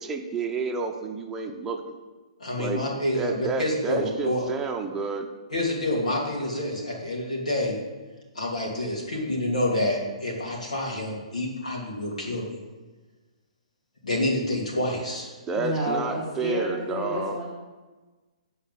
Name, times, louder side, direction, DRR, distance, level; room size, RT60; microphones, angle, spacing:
voice 1, 0.0-2.0 2.6-2.9 3.1-5.3 15.5-17.4, right 4 dB, 15° right, 3 dB, 0.8 m, -30 dB
voice 2, 2.4-4.5 5.5-7.8 8.3-12.6 14.0-15.3, left 1 dB, 85° left, -2 dB, 2.9 m, -28 dB
voice 3, 15.6-17.5, left 1 dB, 15° left, -7 dB, 1.7 m, -30 dB
8.5 x 4.8 x 6.9 m, 1.3 s
hypercardioid pair, 140°, 4 cm